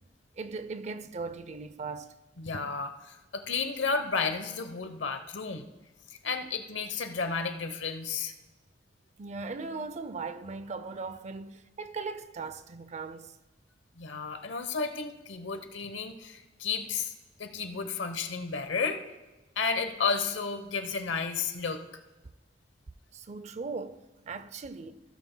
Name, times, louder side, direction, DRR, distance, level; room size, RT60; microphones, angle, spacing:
voice 1, 0.4-2.1 9.2-13.3 23.1-25.0, right 4 dB, 40° right, 0.5 m, -38 dB
voice 2, 2.4-5.7 6.1-8.3 14.0-19.0 19.6-21.8, left 5 dB, 80° left, 0.9 m, -32 dB
15.5 x 12.5 x 2.2 m
head